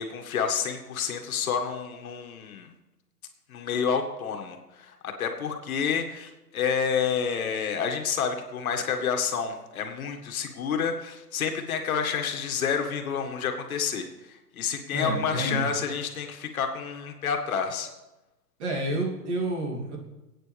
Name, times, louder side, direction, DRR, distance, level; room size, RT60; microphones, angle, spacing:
voice 1, 0.0-2.7 3.5-17.9, left 6 dB, 60° left, 4 dB, 1.9 m, -29 dB
voice 2, 14.9-15.7 18.6-20.0, right 1 dB, 45° right, 0 dB, 2.9 m, -29 dB
26.5 x 9.0 x 3.5 m, 1.0 s
hypercardioid pair, 165°, 47 cm